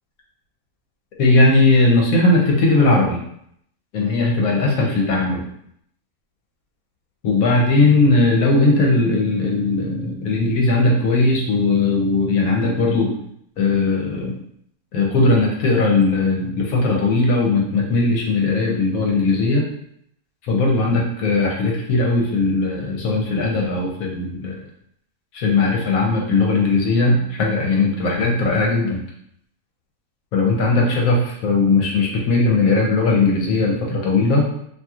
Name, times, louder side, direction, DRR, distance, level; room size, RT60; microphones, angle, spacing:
voice 1, 1.2-3.2 3.9-5.5 7.2-13.2 13.6-14.4 14.9-19.7 20.4-24.6 25.3-29.0 30.3-34.7, left 3 dB, 65° left, -1 dB, 1.1 m, -18 dB
2.9 x 2.7 x 2.4 m, 0.70 s
omnidirectional pair, 1.7 m